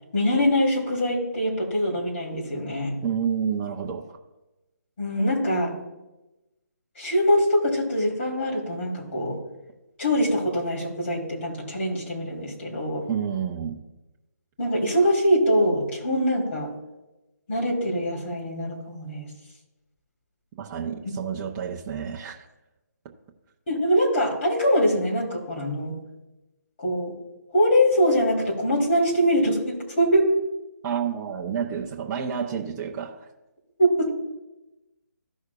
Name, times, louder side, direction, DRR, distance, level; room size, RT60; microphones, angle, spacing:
voice 1, 0.1-3.0 5.0-5.7 7.0-9.4 10.0-13.0 14.6-16.7 17.5-19.3 23.7-26.0 26.8-27.2 27.5-30.3 33.8-34.1, equal, 40° left, 3.4 m, -23 dB
voice 2, 3.0-4.2 13.1-13.8 20.6-22.4 30.8-33.3, right 7 dB, 15° right, 0.6 m, -29 dB
16.0 x 6.3 x 2.4 m
hypercardioid pair, 165°, 10 cm